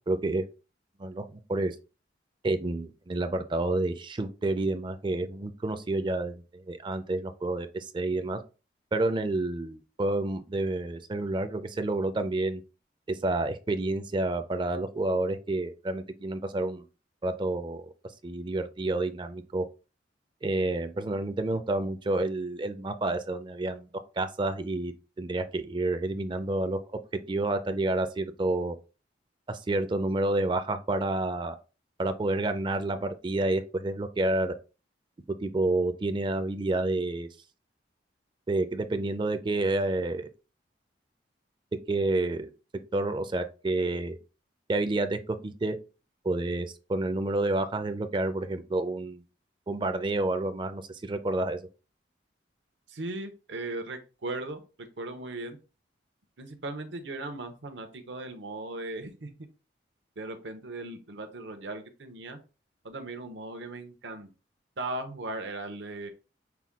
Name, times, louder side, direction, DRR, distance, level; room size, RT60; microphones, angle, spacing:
voice 1, 0.1-0.4 1.0-1.8 2.4-8.4 8.9-12.6 13.1-16.8 17.2-17.9 18.2-19.7 20.4-23.9 24.2-24.9 25.2-26.8 27.3-28.8 29.5-31.6 32.0-34.5 35.3-37.3 38.5-40.3 41.7-44.2 44.7-45.8 46.2-49.2 49.7-51.6, right 2 dB, 25° right, 0.4 m, -29 dB
voice 2, 52.9-55.6 56.4-59.3 60.2-62.4 62.8-64.3 64.8-66.1, right 2 dB, 85° right, 0.8 m, -38 dB
5.8 x 2.2 x 3.5 m
head